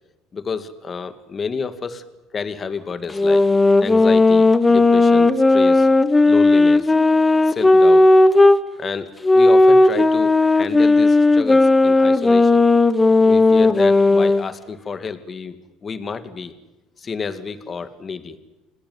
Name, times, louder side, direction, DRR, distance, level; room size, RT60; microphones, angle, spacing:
voice 1, 0.3-2.1 2.3-3.5 3.8-5.9 6.2-6.9 7.5-8.1 8.8-12.6 13.3-16.5 17.0-18.4, left 5 dB, 30° left, 11 dB, 2.1 m, -30 dB
sound 1, 3.1-8.6 9.2-14.4, left 2 dB, 15° left, 1.1 m, -14 dB
28.5 x 18.5 x 9.4 m, 1.1 s
supercardioid pair, 110°, 0 cm